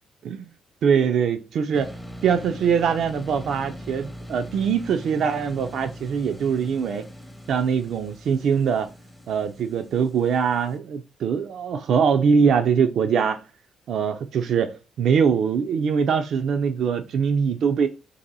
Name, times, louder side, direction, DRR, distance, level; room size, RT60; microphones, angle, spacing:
voice 1, 0.8-1.9 2.2-7.1 7.5-8.9 9.3-13.4 13.9-17.9, right 6 dB, 70° right, 0.3 m, -22 dB
sound 1, 1.7-10.8, equal, 10° left, 0.6 m, -41 dB
2.7 x 2.6 x 3.9 m
supercardioid pair, 60°, 0 cm